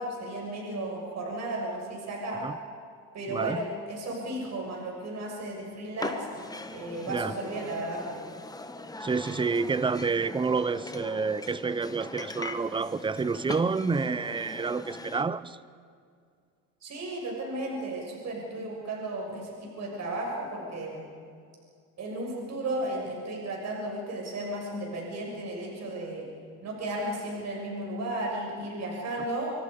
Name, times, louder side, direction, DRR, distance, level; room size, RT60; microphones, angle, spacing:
voice 1, 0.0-2.4 3.1-6.3 6.7-8.0 16.8-21.1 22.0-26.3 26.6-29.5, right 1 dB, 45° right, -1 dB, 6.7 m, -34 dB
voice 2, 3.3-3.6 7.1-7.3 9.0-15.6, right 4 dB, 15° right, 17 dB, 0.6 m, -29 dB
sound 1, 6.0-15.2, left 2 dB, 10° left, 1.3 m, -40 dB
27.0 x 24.5 x 5.4 m, 2.2 s
supercardioid pair, 105°, 38 cm